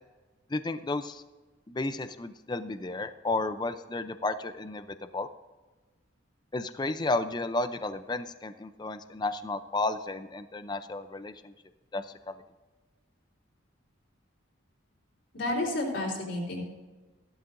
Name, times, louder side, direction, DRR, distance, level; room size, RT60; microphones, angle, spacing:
voice 1, 0.5-1.2 1.7-4.8 5.1-5.3 6.5-11.5 11.9-12.3, left 2 dB, 20° left, 11 dB, 0.5 m, -32 dB
voice 2, 15.3-16.7, left 1 dB, 70° left, -2 dB, 3.7 m, -31 dB
15.0 x 12.0 x 2.6 m, 1.2 s
head